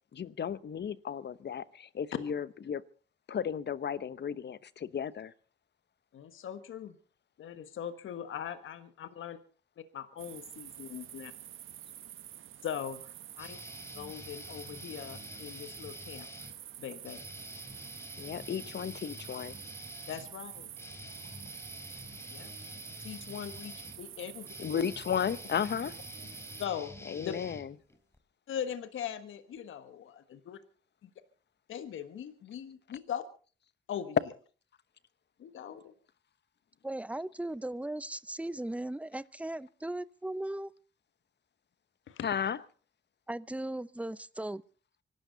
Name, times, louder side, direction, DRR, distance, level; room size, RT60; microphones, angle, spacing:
voice 1, 0.1-2.8 3.3-5.3 18.2-19.6 24.6-26.0 27.1-27.7 42.2-42.6, left 8 dB, 55° left, 1.0 m, -34 dB
voice 2, 6.1-6.9 7.4-9.4 9.8-11.3 12.6-13.6 13.9-16.3 16.8-17.2 20.1-20.7 22.3-22.5 23.0-24.5 26.6-26.9 27.2-27.3 28.5-30.6 31.0-31.1 31.7-33.2 33.9-34.2 35.4-35.9 42.1-42.3, left 9 dB, 75° left, 1.4 m, -40 dB
sound 1, 10.2-26.7, right 11 dB, 75° right, 1.3 m, -48 dB
sound 2, 13.4-16.5 17.0-28.2, left 1 dB, 10° left, 3.8 m, -48 dB
voice 3, 36.8-40.7 43.3-44.6, right 1 dB, 5° right, 0.8 m, -37 dB
25.0 x 12.5 x 4.0 m
supercardioid pair, 45°, 21 cm